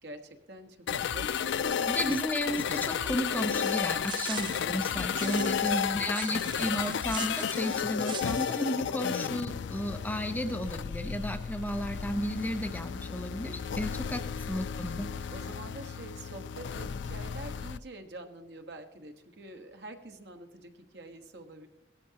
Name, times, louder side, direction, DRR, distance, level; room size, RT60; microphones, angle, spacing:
voice 1, 0.0-2.3 5.2-6.4 8.8-9.2 13.7-14.2 15.3-21.7, right 1 dB, 65° right, 5 dB, 1.3 m, -46 dB
sound 1, 0.9-17.8, left 7 dB, 75° left, 0.4 m, -33 dB
voice 2, 1.9-15.1, equal, 10° left, 5 dB, 0.8 m, -33 dB
sound 2, 3.6-8.6, right 8 dB, 25° right, 0.3 m, -42 dB
17.5 x 13.0 x 2.9 m, 0.90 s
head